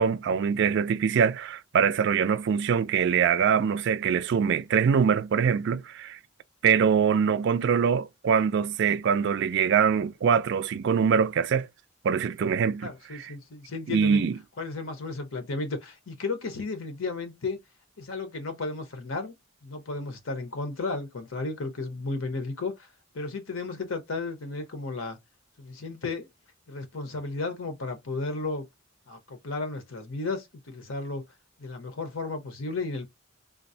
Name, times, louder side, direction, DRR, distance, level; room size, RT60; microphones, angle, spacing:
voice 1, 0.0-6.2 6.6-11.7 12.0-12.9 13.2-13.3 13.9-14.3, right 7 dB, 60° right, 0.3 m, -23 dB
voice 2, 12.8-14.3 14.6-17.6 18.0-19.3 19.6-22.9 23.1-25.2 25.6-26.3 26.7-28.6 29.1-31.2 31.6-33.1, left 3 dB, 80° left, 0.9 m, -33 dB
3.7 x 2.0 x 2.6 m
head